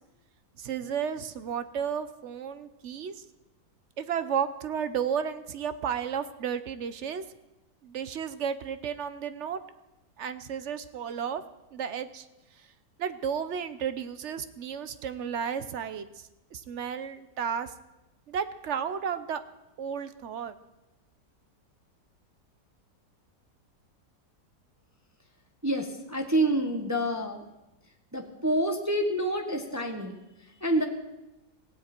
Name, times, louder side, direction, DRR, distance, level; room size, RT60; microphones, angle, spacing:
voice 1, 0.6-3.2 4.0-7.2 7.8-9.6 10.2-11.4 11.7-12.3 13.0-16.1 16.5-17.7 18.3-19.4 19.8-20.5, right 7 dB, 55° right, 12 dB, 0.9 m, -33 dB
voice 2, 25.6-27.4 28.1-30.9, right 1 dB, 10° right, 4 dB, 1.1 m, -28 dB
17.5 x 16.0 x 4.4 m, 0.96 s
omnidirectional pair, 1.8 m